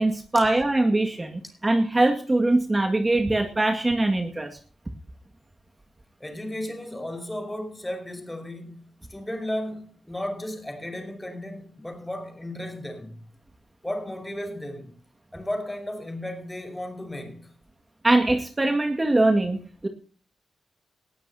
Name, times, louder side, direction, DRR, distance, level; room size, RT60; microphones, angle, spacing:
voice 1, 0.0-4.5 18.0-19.9, right 2 dB, 25° right, 2.1 m, -22 dB
voice 2, 6.2-13.2 13.8-14.9 15.3-17.5, left 1 dB, 10° left, 5.4 m, -34 dB
20.0 x 15.0 x 2.9 m
cardioid pair, 65°, 0 cm